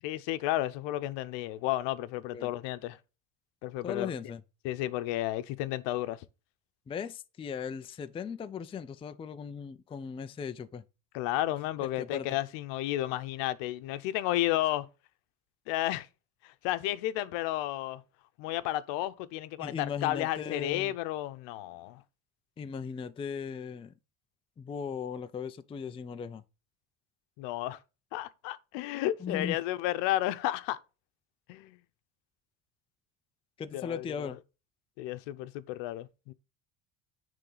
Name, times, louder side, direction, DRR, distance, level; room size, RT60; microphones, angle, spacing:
voice 1, 0.0-3.0 3.6-4.1 4.6-6.3 11.1-14.9 15.7-16.1 16.4-18.0 18.4-22.0 27.4-27.8 28.1-30.8 31.5-31.8 33.7-34.4 35.0-36.3, left 14 dB, 85° left, 0.8 m, -32 dB
voice 2, 3.8-4.4 6.9-10.8 11.8-12.3 19.6-20.9 22.6-23.9 24.6-26.4 29.2-29.6 33.6-34.4, left 6 dB, 15° left, 0.3 m, -38 dB
9.9 x 3.6 x 3.9 m
cardioid pair, 120°, 43 cm